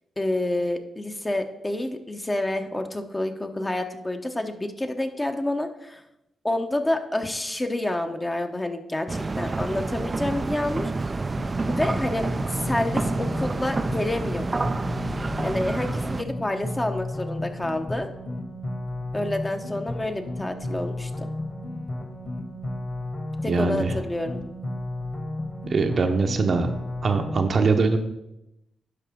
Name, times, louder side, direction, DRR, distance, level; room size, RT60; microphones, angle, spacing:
voice 1, 0.2-6.0 6.4-10.9 11.7-12.3 12.5-14.7 15.4-18.1 19.1-21.3 23.4-24.4, left 1 dB, 20° left, 5 dB, 0.9 m, -28 dB
sound 1, 9.1-16.2, right 3 dB, 35° right, 0.4 m, -28 dB
sound 2, 11.4-27.4, left 1 dB, 40° left, 2.4 m, -33 dB
voice 2, 23.5-23.9 25.7-26.7 27.0-28.0, right 4 dB, 55° right, 6 dB, 0.8 m, -22 dB
11.5 x 4.9 x 3.7 m, 0.89 s
supercardioid pair, 60°, 0 cm